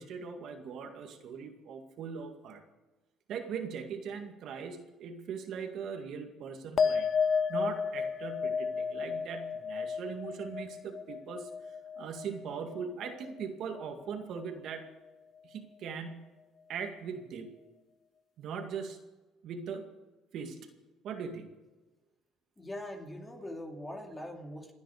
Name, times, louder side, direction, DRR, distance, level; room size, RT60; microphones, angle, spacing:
voice 1, 0.0-2.6 3.3-7.1 7.5-14.9 15.4-16.3 16.7-17.5 18.4-19.0 19.4-19.9 20.3-20.6 21.0-21.5, right 6 dB, 60° right, 4 dB, 2.1 m, -40 dB
sound 1, 6.8-13.5 13.7-14.4, left 6 dB, 40° left, 0.7 m, -33 dB
voice 2, 22.6-24.7, left 1 dB, 15° left, 2 dB, 2.5 m, -42 dB
27.5 x 9.8 x 5.0 m, 1.1 s
cardioid pair, 125°, 0 cm